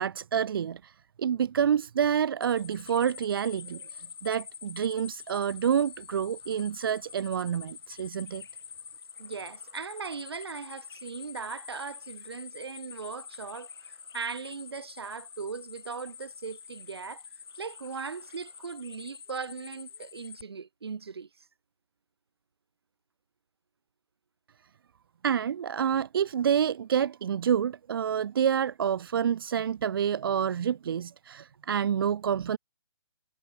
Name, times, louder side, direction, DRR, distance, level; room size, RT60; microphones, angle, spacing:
voice 1, 0.0-8.4 25.2-32.6, right 8 dB, 60° right, 0.5 m, -28 dB
sound 1, 2.4-20.4, left 7 dB, 70° left, 0.7 m, -46 dB
sound 2, 6.4-18.8, right 24 dB, 20° right, 6.6 m, -69 dB
voice 2, 9.2-13.7 14.1-17.2 17.6-21.3, right 5 dB, 80° right, 1.8 m, -39 dB
hypercardioid pair, 155°, 13 cm